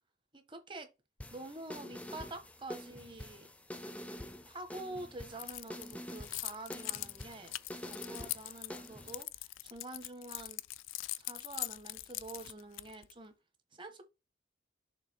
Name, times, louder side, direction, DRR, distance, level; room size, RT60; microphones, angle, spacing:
voice 1, 0.3-0.9 1.3-3.5 4.5-7.5 7.8-10.6 11.2-13.3 13.7-14.0, right 2 dB, 25° right, 1.2 m, -47 dB
sound 1, 1.2-9.2, left 1 dB, 5° left, 0.5 m, -47 dB
Keys jangling, 5.4-13.1, left 18 dB, 80° left, 0.4 m, -42 dB
6.7 x 3.3 x 5.1 m
head